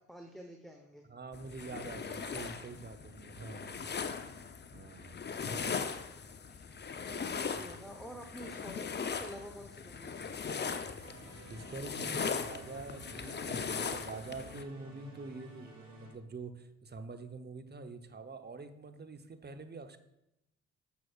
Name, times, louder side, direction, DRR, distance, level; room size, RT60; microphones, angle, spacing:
voice 1, 0.0-1.0 6.5-6.7 7.3-10.6, equal, ahead, 3 dB, 1.0 m, -49 dB
voice 2, 1.1-3.9 4.7-6.1 7.0-7.7 11.5-20.0, right 3 dB, 30° right, 8 dB, 0.9 m, -46 dB
sound 1, 1.3-14.6, left 6 dB, 30° left, 0.7 m, -39 dB
sound 2, 11.0-16.1, right 1 dB, 85° right, 2.8 m, -53 dB
12.5 x 6.1 x 2.4 m, 0.86 s
hypercardioid pair, 45°, 35 cm